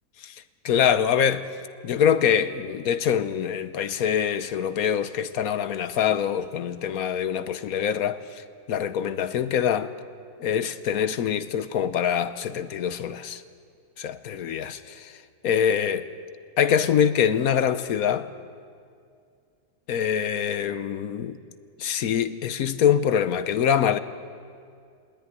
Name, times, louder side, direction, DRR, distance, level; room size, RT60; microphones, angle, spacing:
voice 1, 0.6-1.5 1.8-8.4 8.7-9.9 10.4-13.4 14.0-15.1 15.4-16.1 16.6-18.3 19.9-21.4 21.8-24.0, left 8 dB, 65° left, 1.2 m, -24 dB
21.0 x 17.0 x 9.6 m
omnidirectional pair, 1.7 m